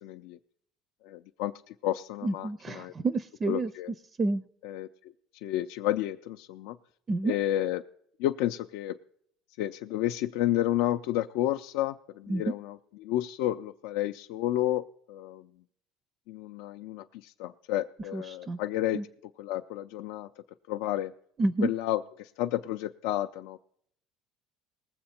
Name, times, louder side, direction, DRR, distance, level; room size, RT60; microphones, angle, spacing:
voice 1, 0.0-0.4 1.0-2.9 3.5-3.9 4.6-4.9 5.3-6.8 7.2-7.8 8.2-9.0 9.6-15.5 16.3-19.0 19.4-20.3 20.7-21.1 21.6-23.6, left 13 dB, 80° left, 6 dB, 0.4 m, -31 dB
voice 2, 2.2-3.7 4.2-4.4 7.1-7.3 12.3-12.4 18.1-18.6 18.9-19.0 21.4-21.7, right 2 dB, 25° right, 16 dB, 0.4 m, -29 dB
19.5 x 7.8 x 4.3 m, 0.67 s
cardioid pair, 140°, 0 cm